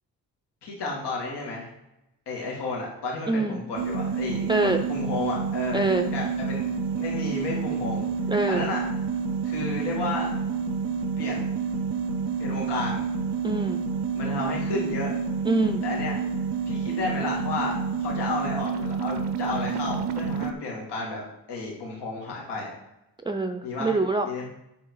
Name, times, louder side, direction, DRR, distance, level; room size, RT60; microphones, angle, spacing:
voice 1, 0.6-1.7 2.3-4.5 4.9-5.8 6.1-8.0 8.5-8.8 9.4-10.3 11.2-11.5 12.4-13.0 14.1-15.1 15.8-16.1 16.7-21.2 21.5-22.7 23.6-24.0 24.2-24.5, left 3 dB, 85° left, -3 dB, 2.6 m, -32 dB
voice 2, 3.3-3.6 4.5-4.8 5.7-6.1 8.3-8.6 13.4-13.8 15.5-15.8 23.2-24.3, right 2 dB, 10° right, 4 dB, 0.5 m, -24 dB
sound 1, 3.7-20.5, right 5 dB, 75° right, 0.8 m, -29 dB
8.5 x 6.3 x 4.8 m, 0.88 s
cardioid pair, 95°, 40 cm